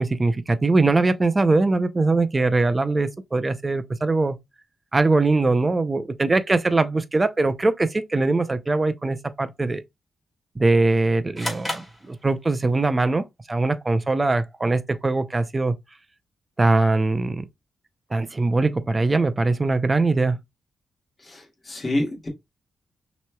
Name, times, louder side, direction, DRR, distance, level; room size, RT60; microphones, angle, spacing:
voice 1, 0.0-4.4 4.9-9.8 10.6-15.8 16.6-17.4 18.1-20.4, right 3 dB, 20° right, 0.5 m, -21 dB
sound 1, 11.3-12.8, equal, ahead, 2.5 m, -33 dB
voice 2, 21.2-22.3, left 1 dB, 25° left, 1.8 m, -28 dB
5.9 x 3.0 x 2.2 m
wide cardioid pair, 130°, 0 cm